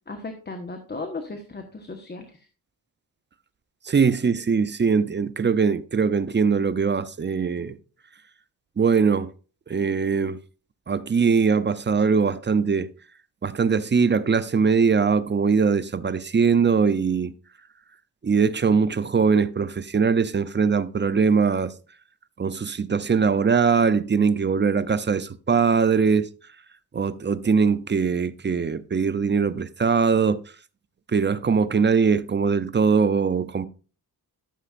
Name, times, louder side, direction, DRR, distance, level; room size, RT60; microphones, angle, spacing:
voice 1, 0.1-2.5, left 3 dB, 25° left, 1.2 m, -36 dB
voice 2, 3.8-7.8 8.8-9.3 9.7-10.4 10.9-12.9 13.4-17.3 18.2-21.7 22.4-26.3 26.9-30.4 31.1-33.7, right 5 dB, 30° right, 0.6 m, -21 dB
13.0 x 6.8 x 2.5 m
cardioid pair, 85°, 37 cm